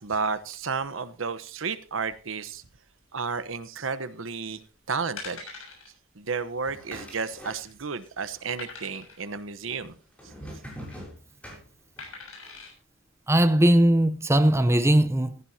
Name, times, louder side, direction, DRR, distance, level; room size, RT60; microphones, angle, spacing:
voice 1, 0.0-2.6 3.1-4.6 4.9-5.5 6.2-10.0, right 5 dB, 70° right, 1.0 m, -32 dB
sound 1, 4.5-4.7 5.2-5.9 6.2-6.4 6.7-6.8 7.3-7.8 8.6-9.3 10.6-11.0 12.0-12.7 13.3-13.4, left 4 dB, 85° left, 6.8 m, -42 dB
sound 2, 6.6-8.1 8.3-9.1 9.7-12.2, equal, 5° left, 7.0 m, -43 dB
voice 2, 13.3-15.3, right 1 dB, 15° right, 0.7 m, -19 dB
15.5 x 15.0 x 2.8 m
head